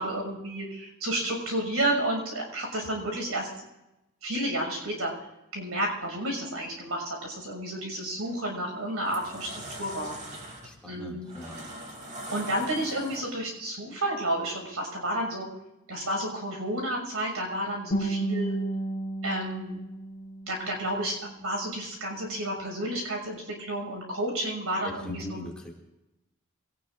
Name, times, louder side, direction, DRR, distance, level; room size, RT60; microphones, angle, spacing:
voice 1, 0.0-3.5 4.2-5.1 5.5-10.1 10.8-11.3 12.3-15.5 15.9-18.5 19.2-19.8 20.5-25.4, right 1 dB, 75° right, 1 dB, 6.0 m, -31 dB
sound 1, 8.2-8.4 8.9-13.6, right 1 dB, 35° right, 2.7 m, -42 dB
voice 2, 10.6-11.6 24.8-25.7, left 1 dB, 5° left, -2 dB, 2.3 m, -40 dB
Guitar, 17.9-20.9, right 2 dB, 35° left, 4.6 m, -32 dB
23.5 x 18.5 x 2.5 m, 0.93 s
head